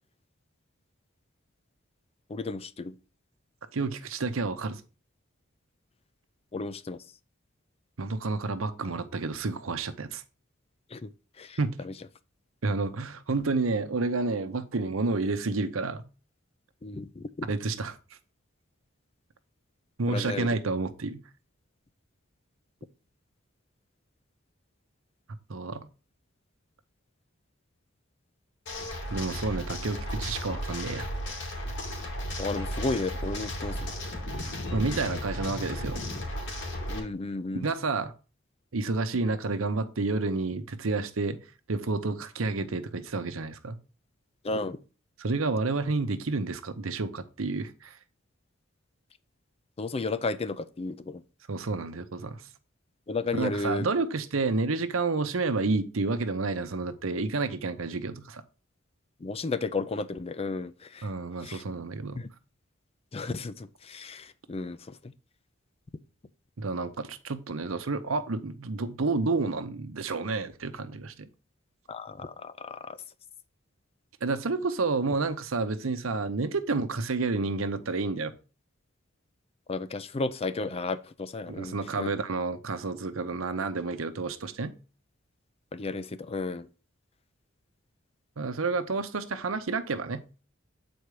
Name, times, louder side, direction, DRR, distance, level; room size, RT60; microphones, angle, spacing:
voice 1, 2.3-2.9 6.5-7.0 10.9-11.1 11.4-11.6 11.8-11.9 16.8-17.5 20.1-20.5 32.4-33.9 36.9-37.7 44.4-44.8 49.8-51.2 53.1-53.9 59.2-61.0 61.4-61.6 62.2-62.3 63.1-64.8 65.0-65.1 71.9-73.0 79.7-82.1 85.7-86.7, left 3 dB, 30° left, 0.5 m, -33 dB
voice 2, 3.7-4.8 8.0-10.2 11.6-11.8 12.6-16.0 17.4-18.0 20.0-21.2 25.5-25.8 29.1-31.1 34.7-36.0 37.6-38.1 38.7-41.4 41.7-43.8 45.2-48.0 51.5-52.4 53.3-58.4 61.0-62.2 66.6-71.3 74.2-78.3 81.5-84.7 88.4-90.2, right 3 dB, 90° right, 0.8 m, -30 dB
sound 1, 28.7-37.0, equal, 60° left, 2.6 m, -34 dB
8.1 x 4.4 x 4.8 m
head